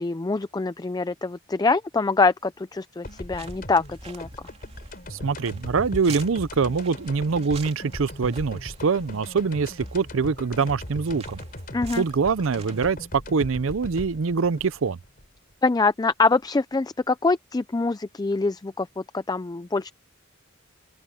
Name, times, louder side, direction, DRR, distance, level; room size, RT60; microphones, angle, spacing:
voice 1, 0.0-4.3 11.7-12.0 15.6-19.9, left 3 dB, 20° left, 0.4 m, -24 dB
sound 1, 3.0-15.8, left 1 dB, 45° left, 4.5 m, -39 dB
sound 2, 3.0-12.9, right 4 dB, 30° right, 2.9 m, -45 dB
voice 2, 5.1-11.4 12.0-15.0, right 5 dB, 70° right, 0.5 m, -24 dB
open air
head